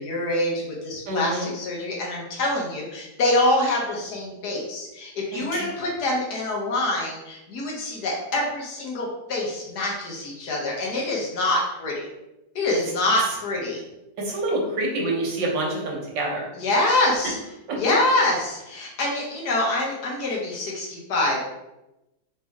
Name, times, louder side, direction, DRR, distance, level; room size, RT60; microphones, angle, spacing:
voice 1, 0.0-12.1 12.5-13.8 16.6-17.4 17.8-21.4, left 2 dB, 65° left, -2 dB, 1.6 m, -25 dB
voice 2, 1.1-1.5 5.3-5.7 14.2-16.5 17.7-17.8, right 1 dB, 90° right, -1 dB, 1.8 m, -27 dB
4.1 x 3.3 x 3.5 m, 0.93 s
omnidirectional pair, 1.9 m